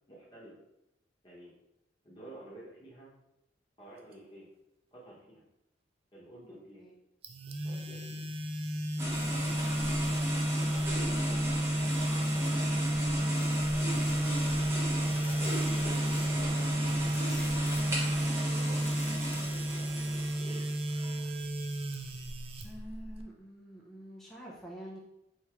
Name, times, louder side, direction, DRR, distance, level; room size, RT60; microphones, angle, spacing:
voice 1, 0.1-0.5 1.2-1.5 2.0-3.1 3.8-4.5 4.9-5.4 6.1-6.8 7.4-8.2 8.9-9.6 10.5-11.4 13.7-17.8 18.5-20.7, right 1 dB, 25° left, -6 dB, 1.1 m, -52 dB
sound 1, 7.2-23.2, right 1 dB, 30° right, 0.3 m, -31 dB
sound 2, 9.0-21.3, equal, 15° right, 1.0 m, -37 dB
sound 3, 13.3-20.2, left 3 dB, 60° left, 0.7 m, -51 dB
voice 2, 22.6-25.0, right 1 dB, ahead, -5 dB, 0.7 m, -47 dB
4.4 x 3.6 x 3.0 m, 0.85 s
head